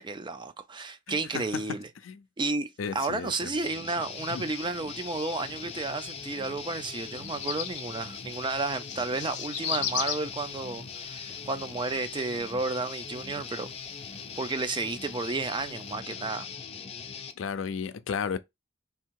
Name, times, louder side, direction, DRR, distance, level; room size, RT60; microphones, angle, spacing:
voice 1, 0.0-1.9 2.4-13.7 14.4-16.5, right 3 dB, 25° right, 0.4 m, -32 dB
voice 2, 1.1-1.6 2.0-2.2 2.8-3.7 4.3-4.5 17.4-18.4, left 6 dB, 90° left, 0.5 m, -34 dB
Guitar, 3.6-17.3, left 6 dB, 30° left, 0.5 m, -41 dB
sound 1, 4.1-15.9, left 9 dB, 65° left, 0.8 m, -41 dB
3.5 x 2.8 x 4.5 m
head